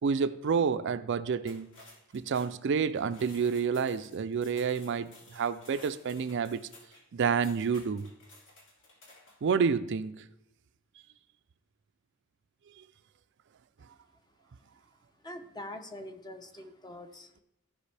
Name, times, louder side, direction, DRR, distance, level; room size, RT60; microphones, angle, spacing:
voice 1, 0.0-1.7 2.1-6.6 7.1-8.1 9.4-10.3, right 6 dB, 55° right, 0.4 m, -29 dB
sound 1, 1.4-9.5, left 2 dB, 60° left, 2.1 m, -55 dB
voice 2, 15.2-17.4, left 1 dB, 20° left, 0.7 m, -44 dB
15.0 x 5.2 x 3.3 m
head